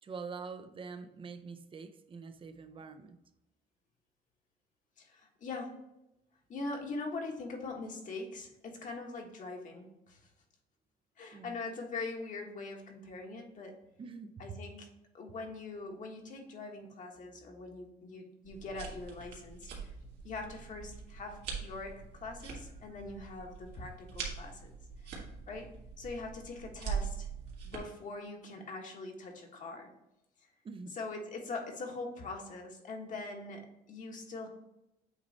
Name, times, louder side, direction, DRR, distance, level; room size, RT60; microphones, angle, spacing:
voice 1, 0.0-3.2 11.3-11.6 14.0-14.6 30.6-31.0, right 5 dB, 30° right, 0.6 m, -45 dB
voice 2, 5.0-5.8 6.5-10.3 11.2-13.8 14.4-14.9 15.1-19.9 20.2-24.7 25.0-25.7 26.0-27.3 27.6-29.9 30.9-34.5, left 3 dB, 50° left, 1.4 m, -42 dB
sound 1, 18.4-27.8, right 6 dB, 75° right, 1.8 m, -43 dB
7.9 x 3.1 x 4.2 m
cardioid pair, 110°, 17 cm